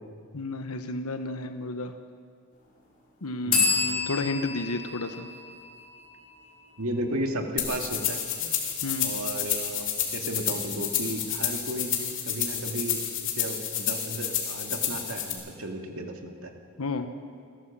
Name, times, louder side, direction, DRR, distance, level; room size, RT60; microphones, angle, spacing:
voice 1, 0.3-1.9 3.2-5.3 8.8-9.1 16.8-17.1, left 2 dB, 85° left, 8 dB, 1.1 m, -32 dB
sound 1, 3.5-7.1, left 5 dB, 40° left, 4.5 m, -30 dB
voice 2, 6.8-8.5 9.0-9.9 10.1-11.9 12.2-16.5, right 1 dB, 75° right, 3 dB, 2.4 m, -34 dB
sound 2, 7.6-15.3, left 9 dB, 60° left, 3.4 m, -30 dB
29.0 x 13.0 x 7.5 m, 2.2 s
head